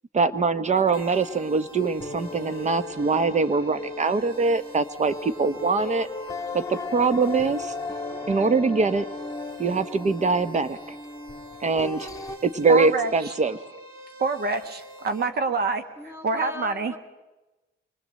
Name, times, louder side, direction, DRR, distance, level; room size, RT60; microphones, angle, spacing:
voice 1, 0.1-6.1 6.5-7.7 8.3-9.1 9.6-11.0 11.6-12.1 12.4-13.6, right 4 dB, 35° right, 13 dB, 1.2 m, -23 dB
sound 1, 0.7-12.4, left 3 dB, 15° left, 2.1 m, -37 dB
sound 2, 0.9-15.2, equal, 85° right, 4.3 m, -46 dB
voice 2, 12.7-13.3 14.2-15.8 16.2-16.9, right 4 dB, 55° right, 8 dB, 1.6 m, -26 dB
voice 3, 16.0-17.0, left 3 dB, 10° right, 7 dB, 2.6 m, -38 dB
24.5 x 19.5 x 7.7 m, 1.1 s
cardioid pair, 90°, 20 cm